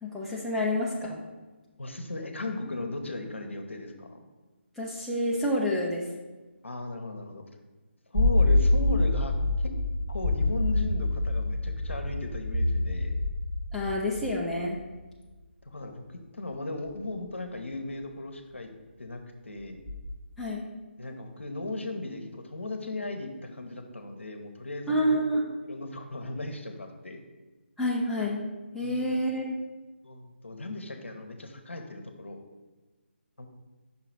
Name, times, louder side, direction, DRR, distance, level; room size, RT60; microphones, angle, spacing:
voice 1, 0.0-1.2 4.8-6.0 13.7-14.8 20.4-20.6 24.9-25.4 27.8-28.4 28.7-29.4, equal, ahead, -6 dB, 0.4 m, -28 dB
voice 2, 1.8-4.2 6.6-7.5 8.1-9.7 10.1-13.2 15.6-18.7 19.0-19.8 21.0-25.2 25.6-27.2 28.8-29.2 30.0-32.4 33.4-33.5, left 2 dB, 75° left, 5 dB, 0.8 m, -37 dB
sound 1, 8.1-14.9 16.9-17.0 19.9-20.1, left 2 dB, 25° right, 1.1 m, -26 dB
5.7 x 3.9 x 4.5 m, 1.2 s
figure-of-eight pair, 150°, 7 cm